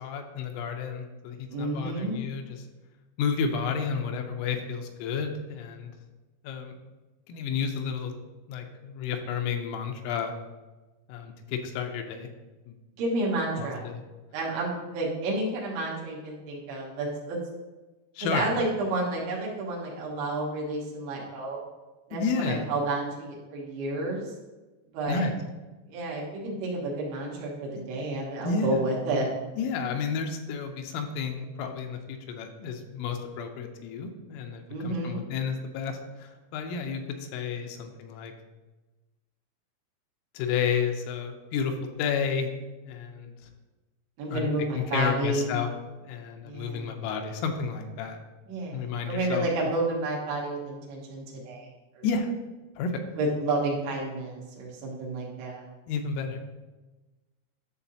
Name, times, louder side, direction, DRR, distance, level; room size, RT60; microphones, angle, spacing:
voice 1, 0.0-2.6 3.2-5.9 6.4-6.7 7.3-8.1 8.5-10.3 11.1-12.3 13.6-14.0 18.2-18.5 22.1-22.7 25.1-25.3 27.8-27.9 28.4-28.8 29.6-38.3 40.3-42.5 42.8-43.3 44.3-44.5 44.7-45.7 46.0-48.2 48.7-49.5 52.0-52.3 52.8-52.9 55.9-56.4, left 6 dB, 85° left, 4 dB, 3.3 m, -31 dB
voice 2, 1.5-2.2 13.0-13.8 14.3-17.4 18.2-21.6 22.1-24.3 24.9-25.3 25.9-29.3 34.7-35.2 44.2-45.5 46.4-46.9 48.5-51.7 52.0-52.1 53.2-55.6, right 2 dB, 70° right, -3 dB, 3.5 m, -30 dB
11.0 x 6.9 x 2.8 m, 1.2 s
omnidirectional pair, 6.0 m